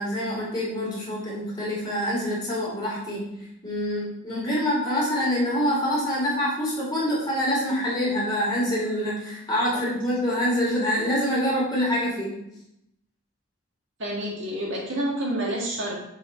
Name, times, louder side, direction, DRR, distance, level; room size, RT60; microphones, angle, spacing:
voice 1, 0.0-3.2 3.6-12.3, equal, 20° left, -6 dB, 2.7 m, -26 dB
voice 2, 14.0-15.9, right 1 dB, 60° right, -3 dB, 1.8 m, -28 dB
6.9 x 4.7 x 4.6 m, 0.81 s
head